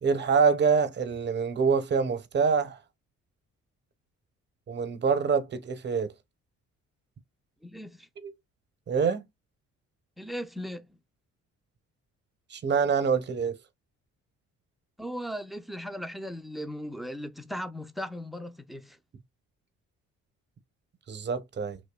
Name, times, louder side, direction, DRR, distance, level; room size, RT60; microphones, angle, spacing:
voice 1, 0.0-2.8 4.7-6.1 8.2-8.3 8.9-9.2 12.5-13.6 21.1-21.8, right 5 dB, 35° right, 0.7 m, -25 dB
voice 2, 7.6-8.1 10.2-11.0 15.0-19.0, equal, ahead, 0.4 m, -37 dB
2.6 x 2.1 x 2.2 m
cardioid pair, 90°, 30 cm